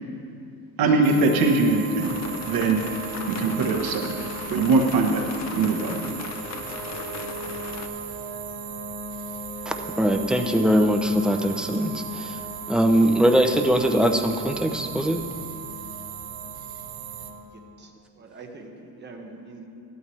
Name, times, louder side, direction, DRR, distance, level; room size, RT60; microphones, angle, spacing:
sound 1, 0.8-17.4, right 2 dB, 25° left, 2.4 m, -38 dB
voice 1, 0.8-2.2 2.5-2.8 3.3-4.1 4.5-6.1, right 3 dB, 60° right, 2 dB, 1.2 m, -22 dB
sound 2, 1.0-17.3, right 10 dB, 85° right, 1.1 m, -40 dB
sound 3, 2.0-7.9, left 7 dB, 45° left, 0.6 m, -38 dB
voice 2, 10.0-12.4 12.7-15.2, equal, ahead, 4 dB, 0.5 m, -21 dB
voice 3, 18.2-19.7, right 3 dB, 25° right, 0 dB, 1.3 m, -43 dB
14.0 x 12.0 x 3.2 m, 2.5 s
cardioid pair, 145°, 39 cm